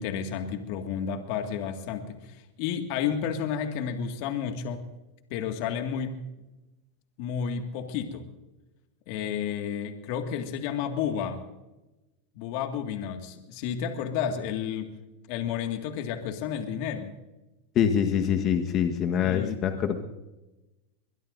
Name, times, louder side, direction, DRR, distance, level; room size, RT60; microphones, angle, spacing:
voice 1, 0.0-4.8 5.3-6.2 7.2-8.2 9.1-11.4 12.3-14.9 15.3-17.1 19.2-19.6, left 8 dB, 60° left, 5 dB, 2.0 m, -31 dB
voice 2, 17.7-20.0, left 8 dB, 40° left, 5 dB, 1.4 m, -25 dB
22.5 x 22.5 x 2.7 m, 1.0 s
hypercardioid pair, 105°, 0 cm